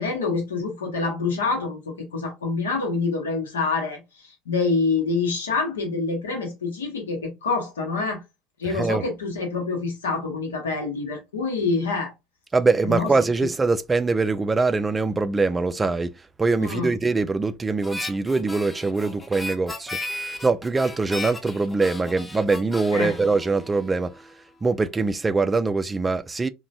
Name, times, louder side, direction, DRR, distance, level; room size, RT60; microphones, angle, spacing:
voice 1, 0.0-8.2 8.6-12.1 12.8-13.1 16.6-16.9 22.9-23.2, left 4 dB, 85° left, 0.9 m, -26 dB
voice 2, 8.7-9.0 12.5-16.1 16.4-24.1 24.6-26.5, right 3 dB, 20° right, 0.3 m, -23 dB
Harmonica, 17.8-24.3, left 2 dB, 15° left, 0.7 m, -36 dB
2.9 x 2.2 x 2.6 m
hypercardioid pair, 75°, 0 cm